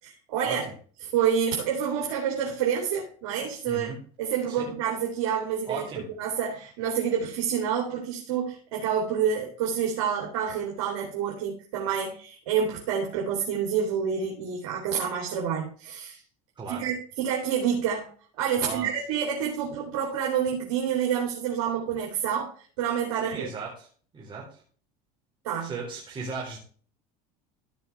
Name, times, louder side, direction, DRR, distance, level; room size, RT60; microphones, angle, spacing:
voice 1, 0.0-0.7 1.0-3.9 4.2-16.2 16.7-18.1 18.4-22.5 22.8-23.5 25.4-25.7, right 8 dB, 80° right, -1 dB, 3.0 m, -28 dB
voice 2, 3.7-4.0 4.5-4.7 5.7-6.1 16.6-16.9 18.6-18.9 23.2-23.9 24.1-24.6 25.6-26.6, right 4 dB, 30° right, -3 dB, 3.9 m, -36 dB
15.0 x 5.7 x 3.4 m, 0.42 s
supercardioid pair, 115°, 17 cm